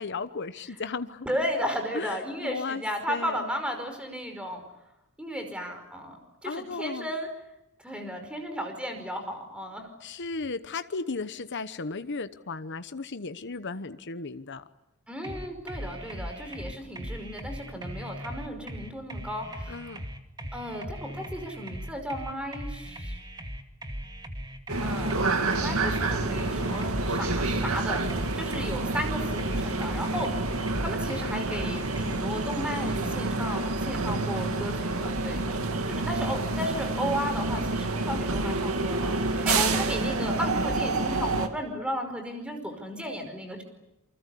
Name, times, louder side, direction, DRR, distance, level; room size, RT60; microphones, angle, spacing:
voice 1, 0.0-1.3 1.9-2.2 2.4-2.8 3.1-3.5 6.4-7.1 10.0-14.6 19.7-20.1 31.0-31.6, left 4 dB, 55° left, 1.0 m, -35 dB
voice 2, 1.3-4.6 5.2-6.2 6.4-7.3 7.8-9.9 15.1-19.8 20.5-23.1 24.8-25.3 25.6-28.0 28.3-30.3 30.8-35.6 35.9-43.6, equal, 5° right, 5.2 m, -34 dB
sound 1, 15.2-32.2, equal, 20° right, 2.3 m, -39 dB
sound 2, 24.7-41.5, right 2 dB, 85° right, 2.4 m, -28 dB
28.5 x 24.5 x 8.4 m
head